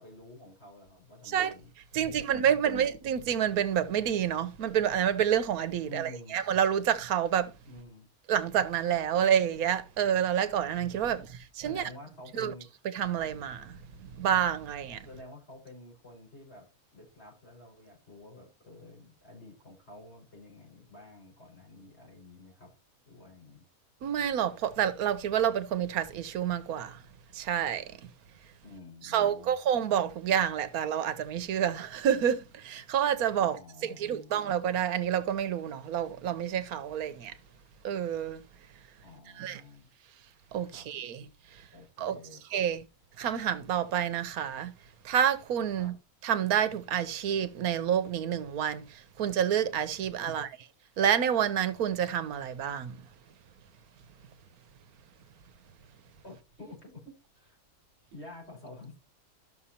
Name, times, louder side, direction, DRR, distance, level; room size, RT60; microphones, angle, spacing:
voice 1, 0.0-1.7 2.0-2.8 5.8-6.4 7.7-8.1 11.0-11.3 11.6-12.7 15.0-16.7 16.9-22.7 23.0-23.6 28.6-29.6 33.4-34.4 39.0-39.9 40.7-40.9 41.7-42.4 45.8-45.9 50.2-50.5 56.2-57.6 58.1-59.0, left 2 dB, 45° left, 5.3 m, -50 dB
voice 2, 1.9-7.5 8.3-11.2 11.6-11.8 12.3-12.5 12.9-13.7 14.2-15.0 24.0-27.0 27.3-27.8 29.1-33.6 34.0-37.3 37.8-38.4 39.4-39.6 40.5-41.2 42.0-42.2 42.5-42.8 43.2-44.7 45.0-45.9 46.2-48.8 49.2-50.5 51.0-53.0, right 9 dB, 85° right, 1.2 m, -28 dB
12.5 x 6.4 x 2.8 m
omnidirectional pair, 1.5 m